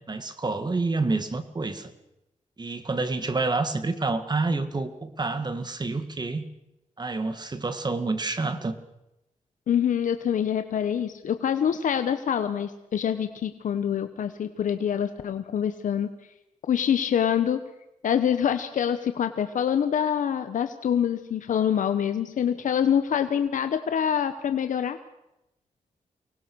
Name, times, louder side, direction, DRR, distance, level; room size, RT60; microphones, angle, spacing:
voice 1, 0.1-1.9 2.6-6.4 7.0-8.8, right 3 dB, 35° right, 10 dB, 2.0 m, -28 dB
voice 2, 9.7-16.1 16.7-17.6 18.0-25.0, left 8 dB, 80° left, 9 dB, 1.0 m, -25 dB
24.0 x 19.5 x 6.3 m, 0.89 s
cardioid pair, 80°, 13 cm